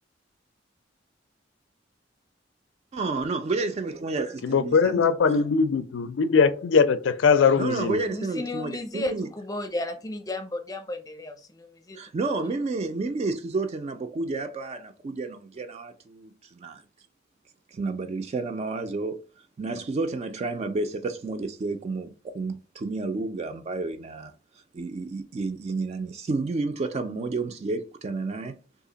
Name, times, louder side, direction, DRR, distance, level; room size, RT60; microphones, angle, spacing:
voice 1, 2.9-5.4 7.6-9.3 12.0-16.3 16.6-16.8 17.7-19.2 19.6-24.3 24.7-28.6, right 3 dB, 35° right, 0.3 m, -30 dB
voice 2, 4.4-8.0, left 5 dB, 75° left, 0.4 m, -21 dB
voice 3, 8.1-9.1 9.5-12.0, left 2 dB, 20° left, 0.6 m, -33 dB
2.8 x 2.4 x 3.9 m
head